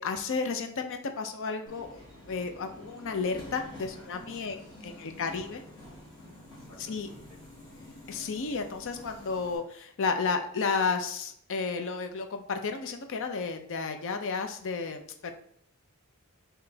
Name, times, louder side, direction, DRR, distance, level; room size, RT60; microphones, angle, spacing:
voice 1, 0.0-2.0 2.3-5.6 6.9-7.1 8.1-15.3, left 4 dB, 60° left, 6 dB, 0.6 m, -32 dB
Subway metro underground, 1.7-9.6, left 1 dB, 20° left, 1.3 m, -48 dB
voice 2, 4.4-5.7 6.4-7.9, left 2 dB, 85° left, -5 dB, 1.5 m, -59 dB
4.9 x 3.0 x 3.4 m, 0.66 s
head